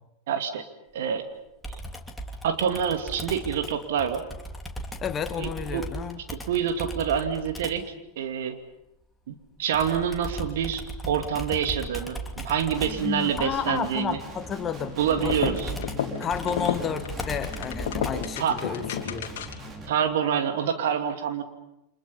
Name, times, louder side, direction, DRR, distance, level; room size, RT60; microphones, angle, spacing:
voice 1, 0.3-0.7 0.9-1.2 1.7-1.8 2.4-4.2 5.4-5.9 6.3-7.8 8.2-8.6 9.3-14.2 15.0-15.7 18.4-18.6 19.9-21.4, right 8 dB, 55° right, 7 dB, 2.4 m, -27 dB
Computer keyboard, 1.6-7.9 9.7-18.4, right 1 dB, 5° left, 2.9 m, -37 dB
voice 2, 5.0-6.2 13.0-15.0 15.2-15.5 16.2-18.8 19.1-19.3, left 7 dB, 25° left, 10 dB, 1.7 m, -31 dB
Guitar, 12.7-19.9, right 1 dB, 20° right, 3.8 m, -41 dB
sound 1, 15.2-19.7, left 8 dB, 55° left, 2.5 m, -32 dB
29.5 x 26.0 x 5.5 m, 0.87 s
figure-of-eight pair, 90°, 0 cm